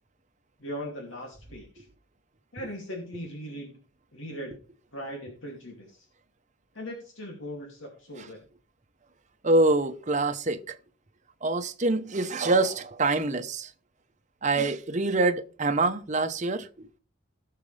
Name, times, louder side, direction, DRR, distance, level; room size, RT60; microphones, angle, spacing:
voice 1, 0.6-1.9 2.5-3.8 4.1-4.6 4.9-6.1 6.7-8.4, equal, 70° left, 2.6 m, -39 dB
voice 2, 9.4-10.8 11.4-13.7 14.4-16.9, right 2 dB, 35° right, 1.0 m, -25 dB
17.5 x 6.7 x 3.4 m
head